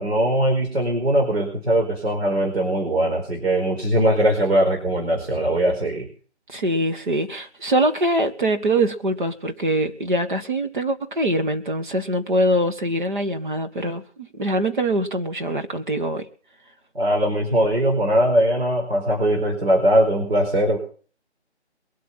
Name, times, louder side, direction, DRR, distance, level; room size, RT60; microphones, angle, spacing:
voice 1, 0.0-6.1 16.9-20.8, right 1 dB, 60° right, 1 dB, 4.6 m, -20 dB
voice 2, 6.5-16.3, right 1 dB, 45° right, 6 dB, 1.8 m, -23 dB
22.0 x 8.5 x 5.8 m, 0.42 s
figure-of-eight pair, 165°, 34 cm